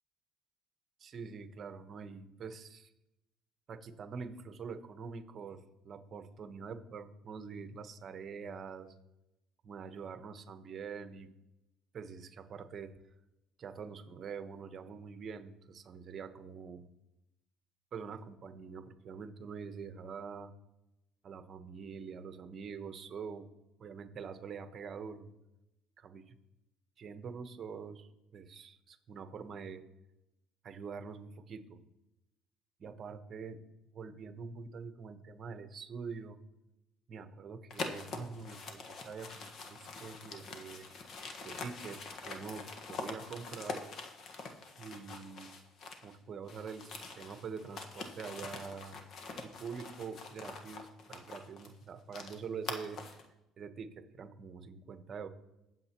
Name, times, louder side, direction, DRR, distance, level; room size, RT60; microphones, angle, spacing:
voice 1, 1.0-2.9 3.7-8.9 9.6-11.3 11.9-12.9 13.6-16.8 17.9-20.5 21.2-23.5 23.8-25.3 26.0-26.3 27.0-29.8 30.6-31.8 32.8-33.6 33.9-36.4 37.1-40.9 41.4-43.8 44.8-45.5 46.0-49.0 49.4-53.0 53.6-55.3, right 5 dB, 45° right, 9 dB, 1.1 m, -45 dB
sound 1, 37.7-46.2 46.5-53.3, left 4 dB, 50° left, 1.4 m, -45 dB
21.0 x 7.4 x 3.0 m, 0.93 s
cardioid pair, 100°, 0 cm